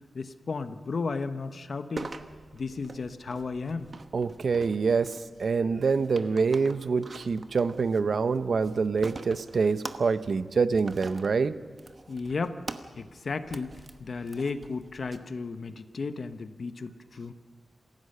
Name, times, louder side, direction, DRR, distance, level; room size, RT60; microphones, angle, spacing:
voice 1, 0.1-2.1 2.5-3.9 12.1-12.6 13.0-13.7 14.0-17.3, left 4 dB, 55° left, 10 dB, 0.9 m, -34 dB
sound 1, 2.0-15.2, right 3 dB, 40° right, 1.0 m, -45 dB
voice 2, 4.1-11.6, right 5 dB, 60° right, 13 dB, 0.7 m, -26 dB
27.0 x 16.0 x 6.6 m, 1.5 s
wide cardioid pair, 135°, 0 cm